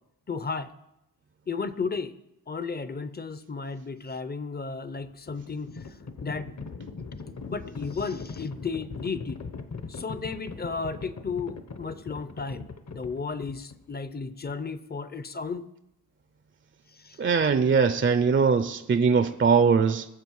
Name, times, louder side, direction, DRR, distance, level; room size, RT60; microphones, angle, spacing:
voice 1, 0.3-0.7 1.5-2.1 2.5-6.5 7.5-9.4 9.9-15.7 16.9-17.2, left 4 dB, 25° left, 13 dB, 0.6 m, -34 dB
Livestock farm animals working animals, 5.0-13.9, left 4 dB, 50° left, 1.0 m, -40 dB
voice 2, 17.2-20.1, right 5 dB, 35° right, 11 dB, 0.5 m, -21 dB
20.0 x 7.4 x 4.7 m, 0.89 s
wide cardioid pair, 135°, 35 cm